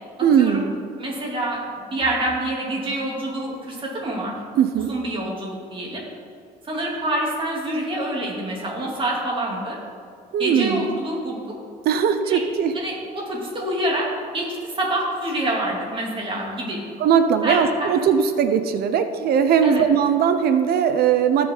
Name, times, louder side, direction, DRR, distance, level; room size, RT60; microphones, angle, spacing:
voice 1, 0.2-0.8 4.6-4.9 10.3-10.9 11.8-12.7 17.0-21.5, right 7 dB, 65° right, 9 dB, 0.8 m, -19 dB
voice 2, 1.0-4.4 4.8-6.0 6.6-9.8 10.4-11.4 12.2-12.4 12.7-14.1 14.3-16.8 17.4-17.9 19.6-19.8, right 1 dB, 30° right, -3 dB, 3.2 m, -26 dB
16.5 x 6.8 x 4.0 m, 2.3 s
cardioid pair, 110°, 17 cm